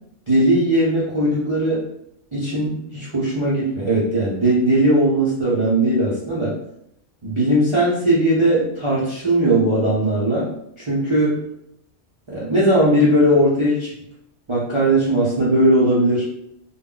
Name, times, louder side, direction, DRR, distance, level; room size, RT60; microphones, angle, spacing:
voice 1, 0.3-1.9 2.3-6.6 7.2-10.5 10.8-11.5 12.3-13.9 14.5-16.3, right 1 dB, 35° right, -8 dB, 0.5 m, -18 dB
2.2 x 2.1 x 3.6 m, 0.74 s
omnidirectional pair, 1.3 m